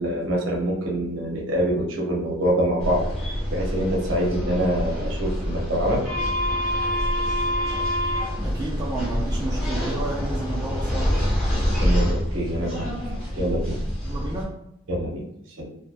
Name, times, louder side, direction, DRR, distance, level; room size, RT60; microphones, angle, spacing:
voice 1, 0.0-6.0 11.8-12.9 13.3-13.8 14.9-15.2 15.6-15.7, equal, 70° right, -2 dB, 0.7 m, -25 dB
sound 1, 2.8-14.4, equal, 5° left, 0.9 m, -26 dB
voice 2, 8.3-11.2 14.0-14.6, right 2 dB, 20° right, -4 dB, 0.3 m, -31 dB
2.6 x 2.1 x 2.4 m, 0.80 s
head